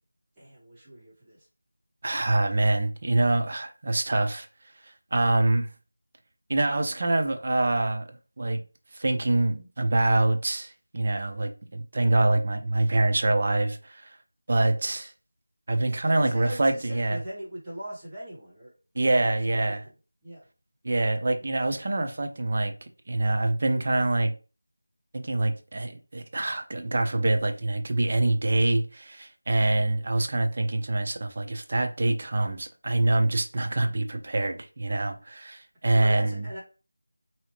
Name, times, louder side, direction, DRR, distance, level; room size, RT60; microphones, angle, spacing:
voice 1, 0.4-1.4 16.0-18.7 19.5-19.8 20.2-20.4 35.9-36.6, right 1 dB, 15° right, 1.1 m, -40 dB
voice 2, 2.0-4.5 5.1-5.7 6.5-8.1 8.4-8.6 8.9-14.0 14.5-15.1 15.7-17.2 19.0-19.8 20.8-22.7 23.1-24.3 25.1-36.4, right 2 dB, 40° right, 0.5 m, -25 dB
2.7 x 2.3 x 3.1 m
figure-of-eight pair, 170°, 0 cm